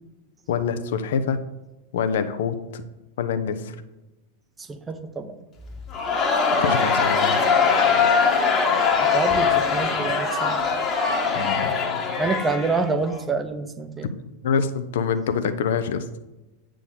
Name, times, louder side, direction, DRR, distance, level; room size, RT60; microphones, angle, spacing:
voice 1, 0.5-1.4 1.9-2.8 3.2-3.7 6.6-7.4 11.3-11.7 14.4-16.0, left 6 dB, 55° left, 10 dB, 0.7 m, -25 dB
voice 2, 4.6-5.4 9.0-10.6 11.0-11.8 12.2-14.1, right 3 dB, 15° right, 9 dB, 0.8 m, -28 dB
Crowd, 5.9-13.2, left 5 dB, 25° left, 1.3 m, -21 dB
8.3 x 3.8 x 6.8 m, 1.0 s
figure-of-eight pair, 90°, 0 cm